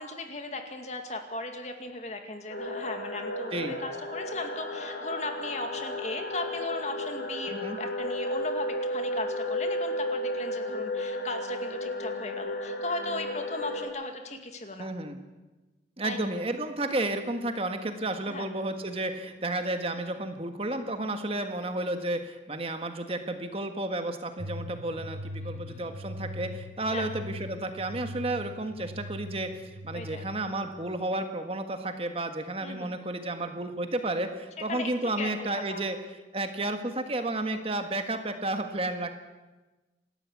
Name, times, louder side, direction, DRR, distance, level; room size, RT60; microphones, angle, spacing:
voice 1, 0.0-14.9 16.0-16.3 18.3-18.5 25.4-25.9 26.9-27.1 29.9-30.3 32.6-33.0 34.6-35.8, left 2 dB, 40° left, 5 dB, 2.3 m, -37 dB
sound 1, 2.5-13.9, left 1 dB, 75° left, 4.9 m, -33 dB
voice 2, 7.5-7.8 14.8-15.2 16.0-29.5 29.8-36.0 36.3-39.1, right 2 dB, 35° right, 7 dB, 1.5 m, -32 dB
sound 2, 24.4-30.5, equal, 85° right, 4.1 m, -41 dB
28.0 x 13.0 x 8.4 m, 1.2 s
head